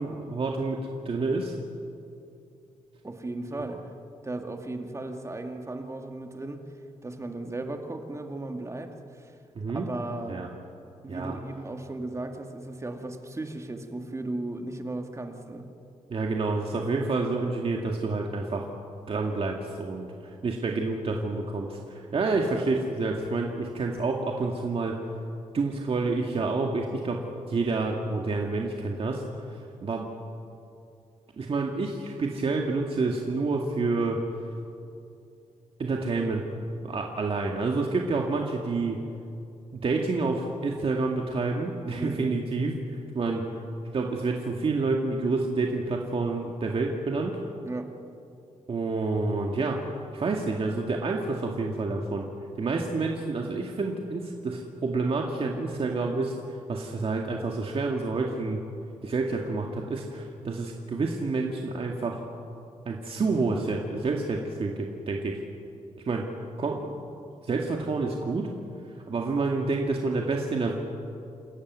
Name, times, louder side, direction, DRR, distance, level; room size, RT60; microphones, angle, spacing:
voice 1, 0.0-1.5 9.6-9.9 10.3-10.5 11.1-11.4 16.1-18.7 19.1-24.9 25.5-27.2 27.5-29.2 29.8-30.1 31.4-34.2 35.8-36.4 36.8-39.0 39.7-43.4 43.9-47.4 48.7-49.8 50.1-52.3 52.6-58.6 59.0-62.2 62.9-65.4 66.1-66.2 66.6-66.9 67.4-68.5 69.1-70.7, right 3 dB, 50° right, 1 dB, 2.1 m, -28 dB
voice 2, 3.0-3.9 4.2-6.7 7.0-9.4 9.7-10.5 11.0-15.7 42.0-42.4 47.6-47.9, right 2 dB, 25° right, 4 dB, 2.3 m, -36 dB
28.0 x 14.5 x 9.5 m, 2.6 s
cardioid pair, 100°, 13 cm